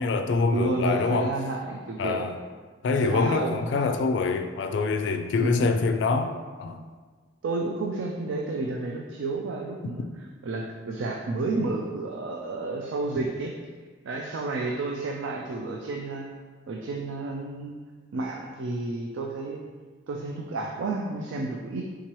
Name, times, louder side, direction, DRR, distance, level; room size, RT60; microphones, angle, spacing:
voice 1, 0.0-1.3 2.0-2.3 2.8-6.3 6.6-6.8, left 4 dB, 65° left, 7 dB, 0.3 m, -25 dB
voice 2, 0.5-2.3 2.9-3.6 5.4-5.7 7.4-10.1 10.4-13.5 14.0-16.3 16.7-17.7 18.1-19.6 20.1-21.8, right 2 dB, 80° right, 0 dB, 0.4 m, -31 dB
4.5 x 3.7 x 3.0 m, 1.5 s
head